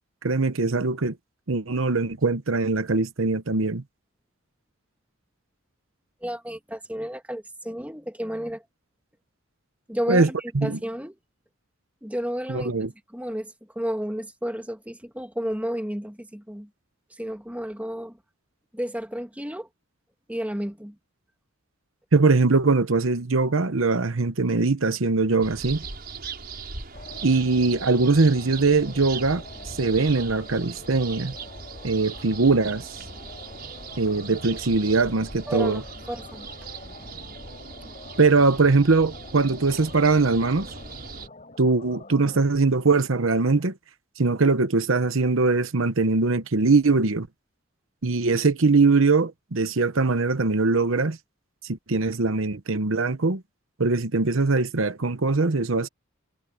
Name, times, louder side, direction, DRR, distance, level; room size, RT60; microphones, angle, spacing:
voice 1, 0.2-1.1 1.5-3.8 10.1-10.3 10.5-10.8 12.5-12.9 22.1-25.8 27.2-31.3 31.8-33.0 34.0-35.8 38.2-40.7 41.6-43.7 44.2-47.3 48.0-51.2 51.6-53.4 53.8-55.9, right 3 dB, 70° right, 1.0 m, -21 dB
voice 2, 6.2-8.6 9.9-10.4 10.6-11.2 12.0-12.7 13.1-16.7 17.2-18.2 18.7-19.7 20.3-21.0 35.5-35.8 36.1-36.5, equal, 5° right, 1.9 m, -32 dB
sound 1, 25.4-41.3, right 5 dB, 45° right, 6.0 m, -39 dB
sound 2, 26.9-42.4, left 3 dB, 35° left, 5.3 m, -46 dB
head